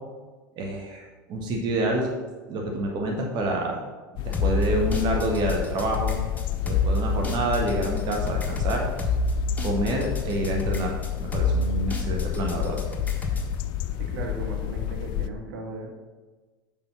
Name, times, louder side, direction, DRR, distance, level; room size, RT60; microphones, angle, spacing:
voice 1, 0.6-2.1 2.5-3.8 4.2-6.2 6.6-8.9 9.6-12.8, right 1 dB, 45° right, 1 dB, 1.4 m, -27 dB
sound 1, 4.2-15.3, left 12 dB, 45° left, 0.4 m, -31 dB
sound 2, 4.3-13.5, left 3 dB, 15° left, 1.5 m, -28 dB
voice 2, 14.0-15.9, right 2 dB, 65° right, 0 dB, 1.6 m, -36 dB
7.1 x 5.5 x 5.5 m, 1.3 s
figure-of-eight pair, 85°, 11 cm